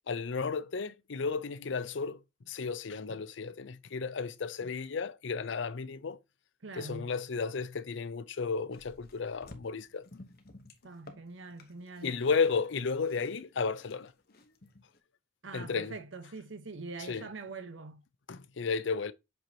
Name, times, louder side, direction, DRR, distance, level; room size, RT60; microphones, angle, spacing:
voice 1, 0.1-2.2 2.5-6.2 6.8-10.1 12.0-14.1 15.5-15.9 17.1-17.2 18.3-19.1, left 5 dB, 75° left, 0.5 m, -33 dB
voice 2, 6.6-7.1 10.8-12.1 15.4-18.0, right 3 dB, 75° right, 1.0 m, -44 dB
sound 1, 8.7-15.0, left 2 dB, 50° left, 1.0 m, -55 dB
7.7 x 4.6 x 2.8 m
head